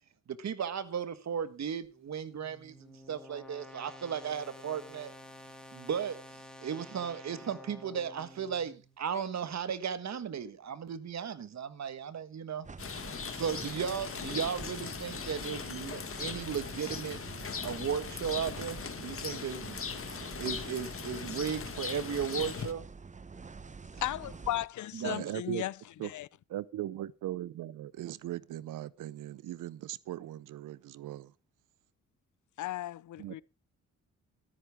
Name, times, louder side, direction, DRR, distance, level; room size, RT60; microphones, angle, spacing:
voice 1, 0.3-5.1 5.7-6.2 6.6-12.7 13.3-17.2 17.6-19.8 20.2-22.8 24.9-25.3, right 7 dB, 60° right, 1.5 m, -36 dB
sound 1, 1.8-9.0, left 1 dB, 5° left, 2.7 m, -51 dB
sound 2, 12.6-24.7, right 4 dB, 25° right, 0.8 m, -47 dB
Rain, 12.8-22.7, left 6 dB, 45° left, 1.8 m, -39 dB
voice 2, 24.0-25.7 26.0-26.3 32.6-33.4, left 14 dB, 70° left, 0.6 m, -35 dB
voice 3, 25.0-25.6 26.0-26.1 26.5-31.3 33.2-33.4, right 13 dB, 80° right, 0.7 m, -39 dB
13.5 x 13.5 x 3.5 m
cardioid pair, 65°, 31 cm